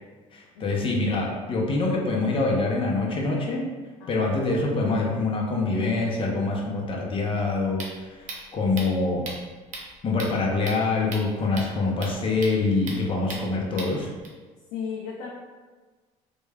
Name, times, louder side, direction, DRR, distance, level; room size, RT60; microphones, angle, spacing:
voice 1, 0.3-3.7 4.1-9.2 10.0-14.1, left 3 dB, 40° left, -1 dB, 0.6 m, -25 dB
voice 2, 4.0-4.3 8.8-9.1 14.7-15.3, left 6 dB, 90° left, -3 dB, 0.4 m, -36 dB
sound 1, 7.4-14.3, right 3 dB, 60° right, 0.7 m, -40 dB
3.0 x 2.2 x 2.3 m, 1.4 s
supercardioid pair, 90°, 14 cm